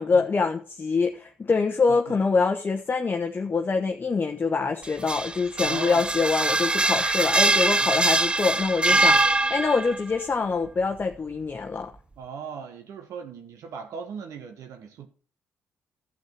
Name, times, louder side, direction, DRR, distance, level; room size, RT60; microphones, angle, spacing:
voice 1, 0.0-9.1 9.5-11.9, left 4 dB, 35° left, 1.0 m, -25 dB
voice 2, 1.9-2.3 5.6-6.1 7.8-7.9 8.9-9.2 12.2-15.1, right 6 dB, 70° right, 1.3 m, -38 dB
sound 1, 4.8-10.0, right 2 dB, 15° right, 0.5 m, -23 dB
12.0 x 7.4 x 4.5 m
hypercardioid pair, 50°, 6 cm